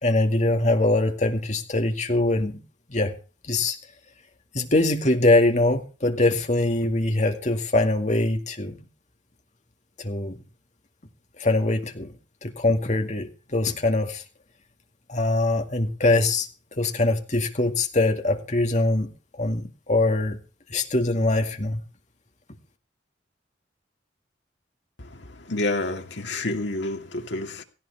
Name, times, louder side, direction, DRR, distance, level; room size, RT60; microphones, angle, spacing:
voice 1, 0.0-2.6 2.9-3.1 3.4-3.8 4.5-8.8 10.0-10.4 11.4-12.1 12.4-14.2 15.1-16.5 16.8-20.4 20.7-21.8, left 2 dB, 40° left, 2.2 m, -23 dB
voice 2, 25.0-27.6, left 2 dB, 75° left, 2.4 m, -29 dB
17.0 x 16.0 x 3.5 m
head